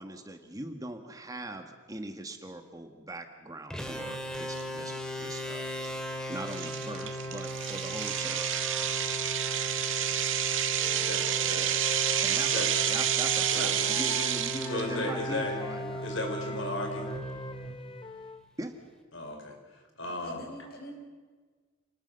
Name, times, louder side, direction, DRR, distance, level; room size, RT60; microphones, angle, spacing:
voice 1, 0.0-5.7 6.3-8.5 12.2-16.0 18.6-18.7, right 1 dB, 20° right, 6 dB, 1.6 m, -41 dB
sound 1, 3.7-18.3, equal, 5° left, 2.3 m, -37 dB
sound 2, 4.6-4.7 5.2-5.4 5.8-5.9 6.5-14.8, right 10 dB, 75° right, 1.8 m, -29 dB
Wind instrument woodwind instrument, 10.8-14.3 14.6-18.4, left 3 dB, 25° left, 1.3 m, -43 dB
voice 2, 10.9-11.8 12.5-12.7 13.5-14.0 14.7-15.5 16.0-17.1 19.1-19.5 20.0-20.4, left 2 dB, 70° left, 3 dB, 5.1 m, -35 dB
voice 3, 20.0-20.9, equal, 50° left, 3 dB, 6.0 m, -46 dB
28.5 x 20.5 x 6.8 m, 1.4 s
head